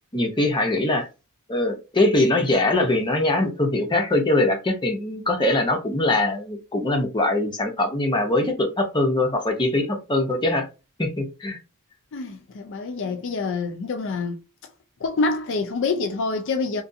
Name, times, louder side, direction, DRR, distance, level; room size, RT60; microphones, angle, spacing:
voice 1, 0.1-1.1 1.5-10.7 11.0-11.6, left 2 dB, 20° left, 0.8 m, -22 dB
voice 2, 12.1-14.4 15.0-16.8, left 3 dB, 60° left, 0.5 m, -26 dB
3.1 x 2.5 x 2.6 m
head